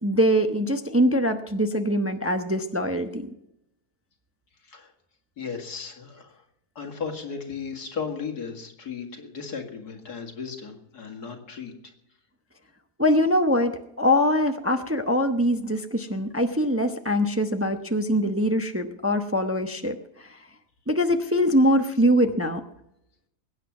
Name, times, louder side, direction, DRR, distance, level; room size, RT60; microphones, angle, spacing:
voice 1, 0.0-3.2 13.0-13.7 14.0-20.4 20.9-22.6, equal, 15° right, 6 dB, 0.5 m, -23 dB
voice 2, 5.4-6.3 6.8-11.7, left 5 dB, 75° left, 2 dB, 2.6 m, -35 dB
21.5 x 9.1 x 6.0 m, 0.83 s
omnidirectional pair, 1.7 m